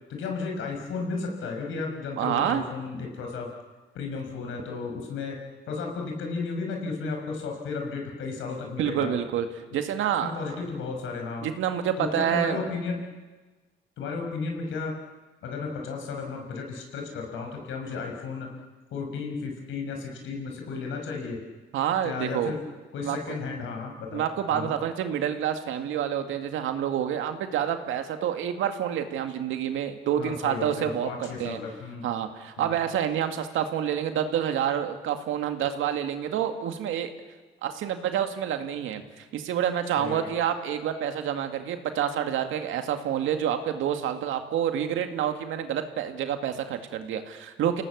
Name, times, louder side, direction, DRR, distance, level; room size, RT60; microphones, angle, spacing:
voice 1, 0.1-3.5 3.9-5.4 5.7-9.2 10.3-11.5 12.0-13.0 14.0-14.9 15.4-18.5 18.9-21.4 22.0-22.6 22.9-24.2 24.5-24.7 30.1-32.1 32.6-32.7 40.0-40.3, left 4 dB, 80° left, 2 dB, 5.9 m, -33 dB
voice 2, 2.2-2.6 8.8-9.5 9.7-10.3 11.4-12.7 21.7-22.5 23.0-23.4 24.1-31.6 32.0-37.1 37.6-47.8, right 9 dB, 85° right, 7 dB, 2.2 m, -28 dB
29.5 x 18.0 x 8.1 m, 1.3 s
cardioid pair, 90°, 20 cm